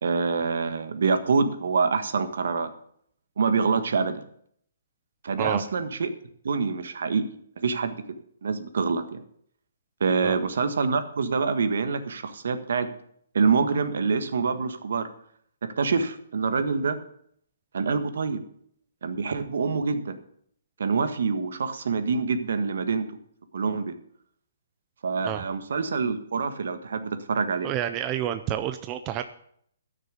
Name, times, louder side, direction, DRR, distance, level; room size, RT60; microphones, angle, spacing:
voice 1, 0.0-2.7 3.4-4.2 5.2-6.1 6.4-7.2 7.6-8.0 8.4-9.2 10.0-12.9 13.3-15.1 15.8-17.0 17.7-18.4 19.0-20.2 20.8-23.0 23.5-23.9 25.0-27.7, right 5 dB, 70° right, 9 dB, 1.6 m, -26 dB
voice 2, 27.6-29.2, right 11 dB, 20° right, 8 dB, 0.5 m, -29 dB
13.0 x 6.7 x 8.3 m, 0.66 s
hypercardioid pair, 165°, 0 cm